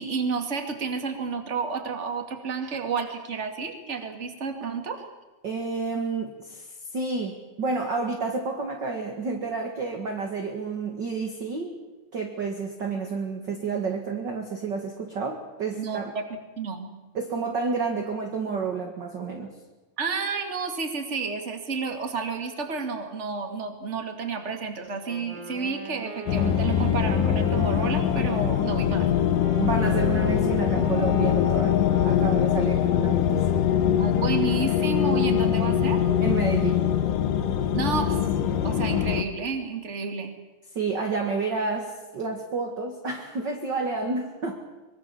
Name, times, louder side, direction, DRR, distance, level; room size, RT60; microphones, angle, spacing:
voice 1, 0.0-5.1 15.8-16.2 16.6-16.9 20.0-29.1 34.0-36.0 37.7-38.2 38.6-40.3, right 4 dB, 20° right, 5 dB, 2.2 m, -30 dB
voice 2, 5.4-11.8 12.1-16.1 17.1-19.5 29.6-33.6 36.2-36.9 40.7-44.6, right 4 dB, 40° right, 3 dB, 1.9 m, -30 dB
Wind instrument woodwind instrument, 25.0-32.9, right 2 dB, 70° right, 5.9 m, -39 dB
sound 1, 26.3-39.2, left 10 dB, 70° left, 2.7 m, -23 dB
24.0 x 23.0 x 7.1 m, 1.1 s
omnidirectional pair, 4.2 m